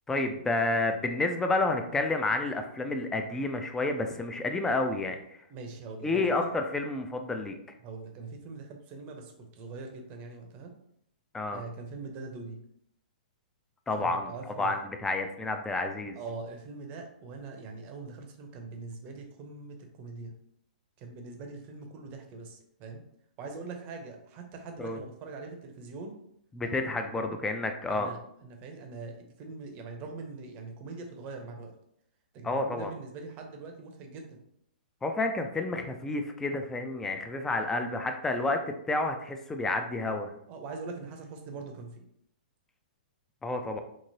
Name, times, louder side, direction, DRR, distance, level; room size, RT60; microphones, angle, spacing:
voice 1, 0.1-5.2 6.0-7.5 11.3-11.6 13.9-14.3 14.6-16.2 24.8-25.0 26.5-28.1 32.4-32.9 35.0-40.3 43.4-43.8, left 2 dB, 10° left, 5 dB, 0.3 m, -30 dB
voice 2, 5.5-6.5 7.8-10.7 11.5-12.6 14.0-14.8 16.2-20.3 21.0-23.0 23.4-26.1 27.1-27.5 27.9-31.7 32.3-34.4 40.5-42.0, right 3 dB, 30° right, 4 dB, 0.6 m, -42 dB
3.0 x 2.8 x 2.7 m, 0.73 s
hypercardioid pair, 135°, 5 cm